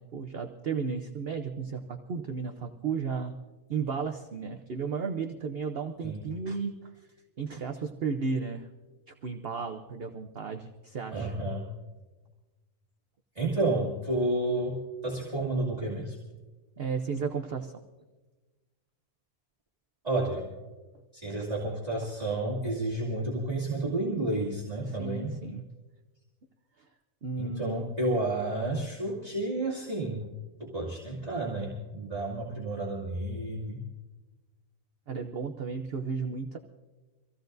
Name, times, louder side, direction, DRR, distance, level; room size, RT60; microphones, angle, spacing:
voice 1, 0.0-3.3 3.7-7.1 7.4-8.7 9.2-11.3 16.8-17.7 24.9-25.7 26.8-26.9 27.2-27.8 35.1-36.6, right 5 dB, 50° right, 5 dB, 0.9 m, -34 dB
voice 2, 11.1-11.7 13.4-14.8 15.0-16.2 20.0-20.5 21.1-25.3 27.4-30.2 30.6-33.8, right 2 dB, 25° right, -6 dB, 2.4 m, -31 dB
25.0 x 16.0 x 2.6 m, 1.2 s
omnidirectional pair, 1.5 m